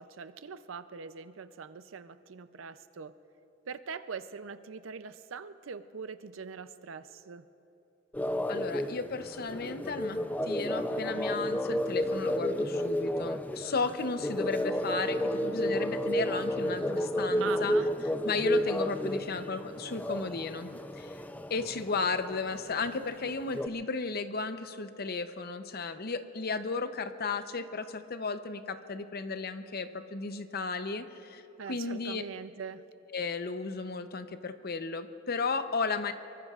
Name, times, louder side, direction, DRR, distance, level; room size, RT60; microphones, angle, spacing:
voice 1, 0.0-3.1 3.7-7.4 17.4-17.9 31.6-32.8, right 6 dB, 70° right, 12 dB, 0.5 m, -42 dB
sound 1, 8.1-23.7, equal, 10° left, 0.4 m, -32 dB
voice 2, 8.5-17.7 18.2-21.2 21.5-32.2 33.1-36.1, left 4 dB, 50° left, 9 dB, 0.7 m, -34 dB
25.5 x 23.5 x 2.4 m, 2.9 s
head